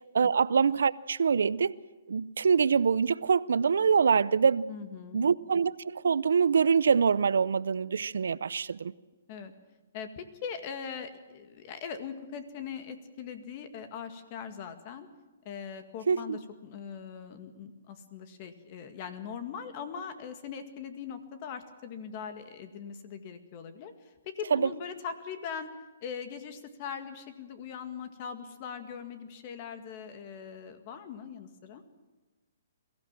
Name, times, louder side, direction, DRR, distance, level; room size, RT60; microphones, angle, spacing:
voice 1, 0.1-1.8 2.1-4.7 5.1-8.9 16.1-16.4 24.5-24.7, right 6 dB, 80° right, 0.6 m, -25 dB
voice 2, 4.7-5.3 9.3-9.5 9.9-15.1 15.5-23.9 24.2-25.7 26.0-31.8, left 7 dB, 35° left, 2.0 m, -41 dB
22.5 x 15.5 x 7.5 m
hypercardioid pair, 155°, 0 cm